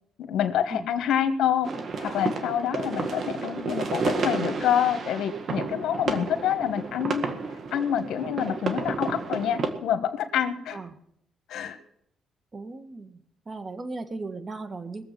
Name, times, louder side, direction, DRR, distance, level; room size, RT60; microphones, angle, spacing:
voice 1, 0.2-1.7 2.0-7.3 7.7-10.8 11.5-11.8, left 9 dB, 75° left, 9 dB, 1.4 m, -27 dB
sound 1, 1.6-9.7, right 4 dB, 55° right, 1.9 m, -31 dB
voice 2, 12.5-13.2 13.4-15.0, right 3 dB, 30° right, 10 dB, 1.6 m, -37 dB
21.5 x 7.6 x 5.9 m, 0.74 s
cardioid pair, 90°, 0 cm